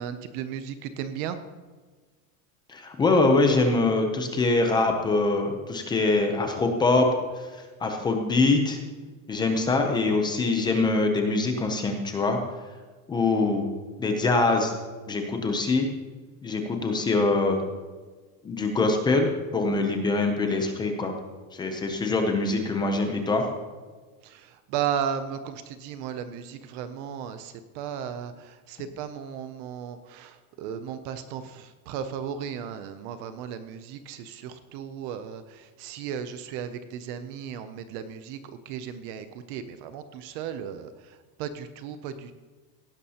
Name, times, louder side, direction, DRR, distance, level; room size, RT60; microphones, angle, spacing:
voice 1, 0.0-1.4 24.2-42.4, right 8 dB, 40° right, 10 dB, 0.5 m, -35 dB
voice 2, 2.7-7.1 7.4-7.5 7.8-8.8 9.3-12.4 13.1-13.7 14.0-14.7 15.1-15.9 16.4-17.6 18.4-21.2 21.5-23.4, left 3 dB, 10° left, 4 dB, 0.5 m, -24 dB
17.5 x 11.0 x 2.8 m, 1.4 s
cardioid pair, 175°, 41 cm